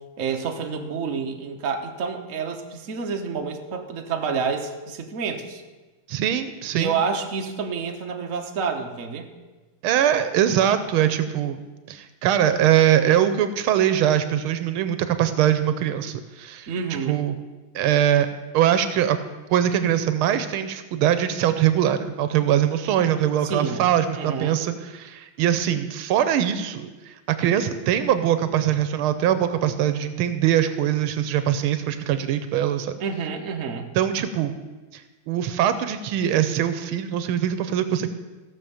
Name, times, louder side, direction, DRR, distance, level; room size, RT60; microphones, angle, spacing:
voice 1, 0.2-5.6 6.7-9.3 16.7-17.2 23.4-23.8 24.2-24.6 33.0-33.9, right 5 dB, 45° right, 4 dB, 1.3 m, -28 dB
voice 2, 6.1-7.0 9.8-11.6 11.9-16.7 17.1-17.4 17.7-18.3 18.5-19.2 19.5-33.0 33.9-34.6 34.9-38.1, right 10 dB, 85° right, 11 dB, 1.5 m, -22 dB
15.5 x 6.4 x 7.1 m, 1.2 s
omnidirectional pair, 2.3 m